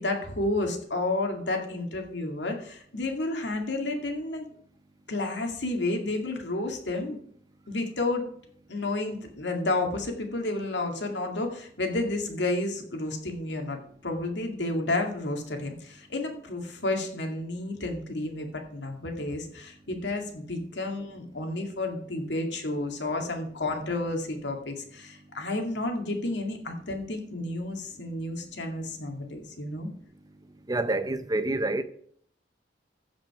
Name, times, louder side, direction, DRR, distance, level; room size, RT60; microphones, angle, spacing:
voice 1, 0.0-4.5 5.1-7.2 7.7-8.2 8.7-29.9, left 2 dB, 75° left, 2.2 m, -31 dB
voice 2, 30.7-31.8, right 2 dB, 20° right, 0.7 m, -27 dB
15.0 x 5.3 x 4.9 m
head